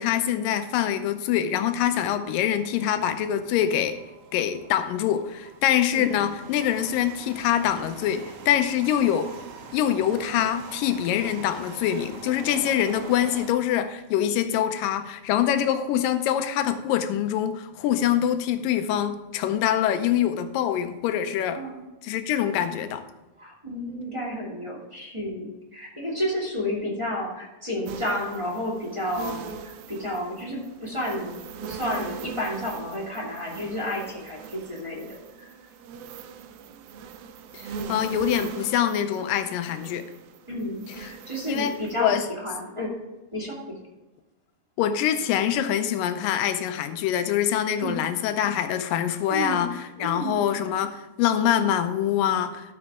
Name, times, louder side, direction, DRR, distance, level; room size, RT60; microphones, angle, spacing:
voice 1, 0.0-4.0 4.3-9.3 9.7-21.6 22.0-23.1 37.5-40.1 41.0-41.1 41.5-42.2 44.8-52.7, left 10 dB, 80° left, 9 dB, 2.3 m, -24 dB
sound 1, 2.0-13.5, right 5 dB, 75° right, 2.4 m, -44 dB
voice 2, 21.5-21.9 23.4-35.5 38.4-38.5 40.5-42.9 43.3-43.7 47.8-48.0 49.3-49.7 50.0-50.4, equal, 10° right, -5 dB, 1.7 m, -31 dB
sound 2, 27.9-42.0, right 5 dB, 90° right, 2.6 m, -41 dB
13.0 x 7.0 x 3.6 m, 1.1 s
omnidirectional pair, 4.1 m